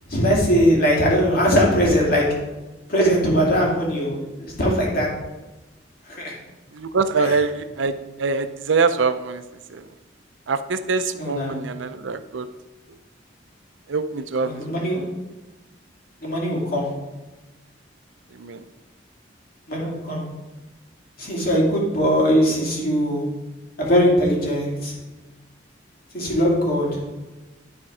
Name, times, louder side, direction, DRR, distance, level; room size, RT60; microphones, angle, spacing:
voice 1, 0.1-2.2 2.9-5.1 6.1-6.3 11.2-11.5 14.4-15.1 16.2-16.9 19.7-20.2 21.2-23.3 23.8-24.9 26.1-26.9, equal, 50° left, -3 dB, 2.6 m, -20 dB
voice 2, 6.7-9.4 9.7-9.9 10.5-12.5 13.9-14.6 18.3-18.6, right 4 dB, 80° right, 11 dB, 0.6 m, -24 dB
11.0 x 4.3 x 4.9 m, 1.1 s
head